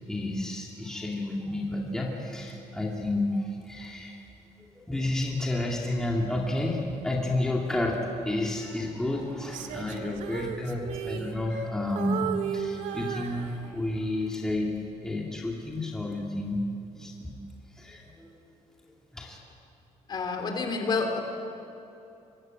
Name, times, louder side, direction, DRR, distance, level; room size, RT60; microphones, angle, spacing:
voice 1, 0.1-4.2 4.6-14.7 15.0-16.6 17.0-17.3 17.8-18.4 19.1-19.4, left 1 dB, 5° left, -2 dB, 2.4 m, -31 dB
Female singing, 9.4-11.7 12.0-14.0 14.5-14.8, right 9 dB, 80° right, 1.9 m, -35 dB
voice 2, 20.1-21.2, left 4 dB, 35° left, 3 dB, 3.3 m, -28 dB
24.5 x 21.0 x 9.1 m, 2.7 s
cardioid pair, 170°, 12 cm